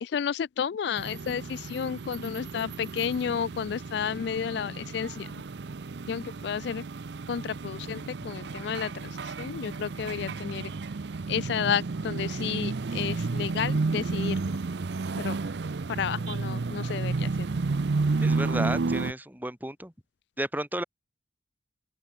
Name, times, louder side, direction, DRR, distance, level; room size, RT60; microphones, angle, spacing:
voice 1, 0.0-5.3 6.1-6.8 7.3-9.1 9.4-10.7 11.3-14.4 15.2-15.3 16.0-17.3, left 7 dB, 60° left, 0.3 m, -31 dB
sound 1, 1.0-19.1, right 3 dB, 65° right, 0.6 m, -32 dB
voice 2, 18.2-19.9 20.4-20.8, right 1 dB, 10° right, 3.5 m, -32 dB
open air
head